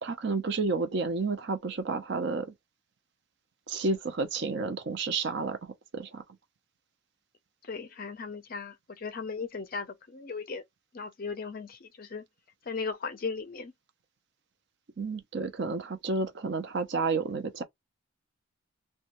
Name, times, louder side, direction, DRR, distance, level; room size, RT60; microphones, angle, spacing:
voice 1, 0.0-2.5 3.7-6.2 15.0-17.6, right 4 dB, 50° right, 0.5 m, -31 dB
voice 2, 7.6-10.6 10.9-12.2 12.6-13.7, left 4 dB, 40° left, 0.4 m, -37 dB
2.5 x 2.2 x 2.9 m
head